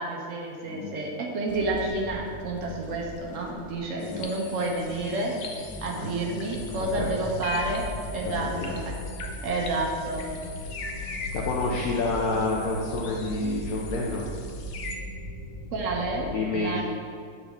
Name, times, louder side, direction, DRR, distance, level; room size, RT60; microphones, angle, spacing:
voice 1, 0.0-5.3 5.8-7.9 8.1-8.9 9.4-10.3 15.7-16.8, right 2 dB, 65° right, -1 dB, 1.1 m, -30 dB
voice 2, 0.6-1.1 4.0-4.3 6.0-6.1 7.0-7.1 8.4-8.7 11.3-14.3 16.3-16.8, left 2 dB, 75° left, -3 dB, 1.1 m, -29 dB
sound 1, 1.5-9.0, equal, 10° left, 0.3 m, -42 dB
sound 2, 4.0-15.0, left 4 dB, 60° left, 0.6 m, -42 dB
sound 3, 6.5-16.3, left 1 dB, 35° right, 1.5 m, -38 dB
7.0 x 4.0 x 3.5 m, 2.1 s
omnidirectional pair, 1.6 m